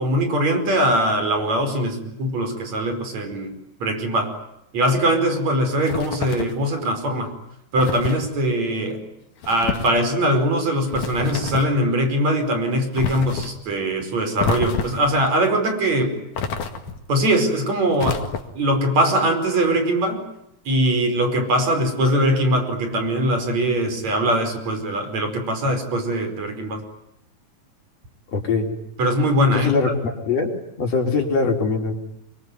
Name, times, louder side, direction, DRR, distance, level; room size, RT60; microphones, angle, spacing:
voice 1, 0.0-3.5 3.8-4.3 4.7-7.3 7.7-9.0 9.5-16.2 17.1-18.2 18.5-20.2 20.7-26.8 29.0-29.7, right 1 dB, 60° right, 6 dB, 6.3 m, -21 dB
sound 1, 5.9-6.6 7.8-8.2 9.4-10.0 10.9-11.8 13.0-13.5 14.4-15.1 16.4-17.1 18.0-18.7, left 5 dB, 85° left, 3.6 m, -28 dB
voice 2, 28.3-28.7 29.5-31.9, left 4 dB, 55° left, 2 dB, 5.5 m, -22 dB
26.5 x 24.0 x 9.4 m, 0.82 s
omnidirectional pair, 3.5 m